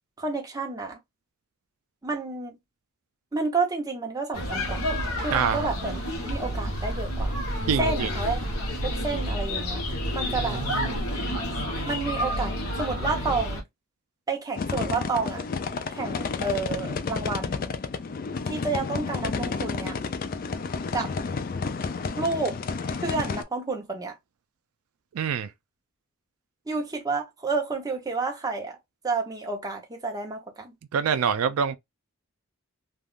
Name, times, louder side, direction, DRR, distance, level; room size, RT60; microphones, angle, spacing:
voice 1, 0.2-1.0 2.0-2.5 3.3-4.9 5.2-6.0 6.3-7.4 7.8-8.4 8.8-9.8 10.1-10.6 11.9-13.6 14.3-15.4 15.9-17.7 18.4-20.0 20.9-21.1 22.2-22.6 23.0-24.2 26.7-28.8 29.0-30.7, right 3 dB, 15° right, 0.7 m, -30 dB
sound 1, 4.3-13.6, equal, 80° left, 0.9 m, -29 dB
voice 2, 5.3-5.7 7.7-8.1 10.3-11.0 25.1-25.5 30.9-31.8, right 7 dB, 75° right, 0.4 m, -26 dB
sound 2, 14.6-23.4, left 4 dB, 40° left, 0.3 m, -31 dB
3.4 x 2.3 x 2.4 m
head